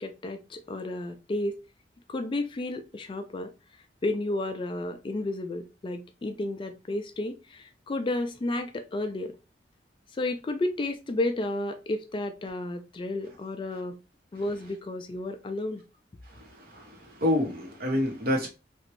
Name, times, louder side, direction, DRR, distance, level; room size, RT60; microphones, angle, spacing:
voice 1, 0.0-1.6 2.1-3.5 4.0-9.4 10.1-13.9 14.3-15.8, left 2 dB, 30° left, 0.3 m, -32 dB
voice 2, 16.2-18.5, left 1 dB, 55° right, 1.1 m, -28 dB
3.0 x 2.5 x 3.1 m
head